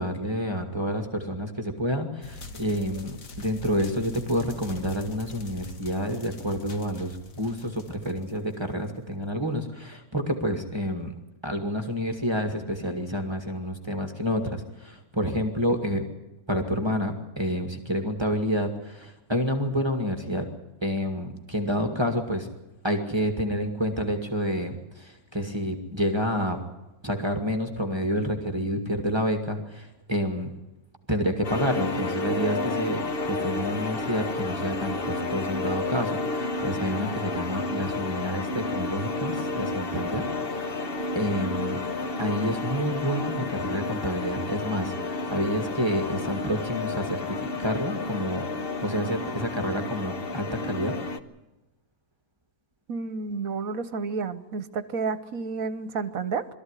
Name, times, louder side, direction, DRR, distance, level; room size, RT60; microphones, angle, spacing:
voice 1, 0.0-11.2 11.4-16.0 16.5-20.5 20.8-22.5 22.8-26.6 27.0-30.5 31.1-33.0 33.3-40.3 40.6-40.9 41.1-41.8 42.2-48.5 48.8-50.9, equal, 20° right, 4 dB, 2.1 m, -29 dB
sound 1, 2.2-9.0, left 1 dB, 65° left, 2.0 m, -43 dB
sound 2, 31.4-51.2, left 3 dB, 40° left, 1.3 m, -31 dB
voice 2, 52.9-56.5, right 4 dB, 70° right, 13 dB, 1.4 m, -30 dB
22.5 x 14.0 x 9.8 m, 0.99 s
omnidirectional pair, 1.5 m